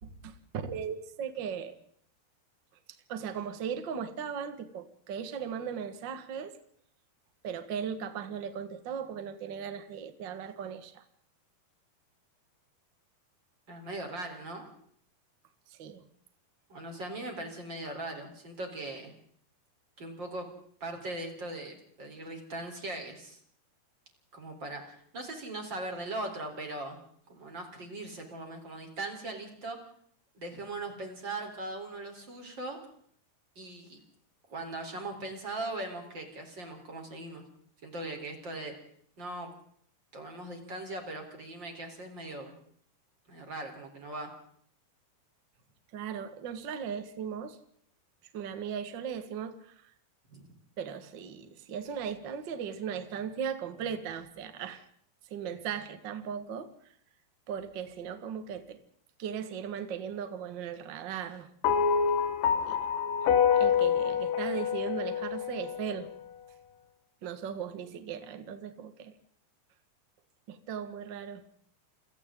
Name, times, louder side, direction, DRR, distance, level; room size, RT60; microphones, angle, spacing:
voice 1, 0.0-1.8 3.1-6.6 7.4-11.0 15.7-16.0 45.9-47.6 48.3-49.9 50.8-54.8 55.3-56.7 57.5-58.8 59.2-61.5 62.7-62.8 63.2-66.1 67.2-69.1 70.5-71.4, right 7 dB, 70° right, 1.0 m, -37 dB
voice 2, 13.7-14.7 16.7-19.1 20.0-20.5 20.8-23.4 24.3-27.0 27.3-29.8 30.3-32.8 33.6-34.0 34.5-37.4 37.8-38.7 39.2-39.5 40.1-42.5 43.3-44.3 50.3-50.6, right 2 dB, 30° right, 4.1 m, -39 dB
sound 1, 61.6-66.1, left 7 dB, 65° left, 2.7 m, -27 dB
29.0 x 23.5 x 3.8 m
omnidirectional pair, 4.8 m